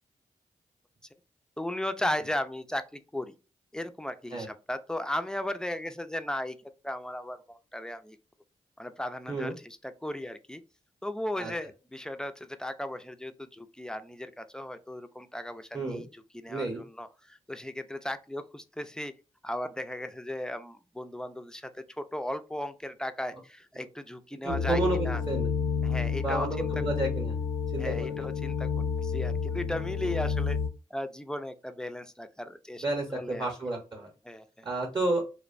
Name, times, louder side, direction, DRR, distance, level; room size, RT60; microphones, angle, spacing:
voice 1, 1.6-3.3 3.7-8.2 8.8-10.6 11.0-19.1 19.4-25.2 25.8-26.7 27.8-30.6 30.9-32.8 33.1-33.5 34.2-34.7, left 1 dB, 5° left, 0.3 m, -36 dB
voice 2, 16.5-16.8 23.8-23.9 24.4-25.5 26.2-27.4 27.7-28.3 32.8-34.1 34.6-35.2, right 2 dB, 30° right, 0.7 m, -31 dB
sound 1, 24.5-30.7, left 6 dB, 80° left, 0.4 m, -30 dB
2.5 x 2.1 x 2.4 m
supercardioid pair, 45°, 14 cm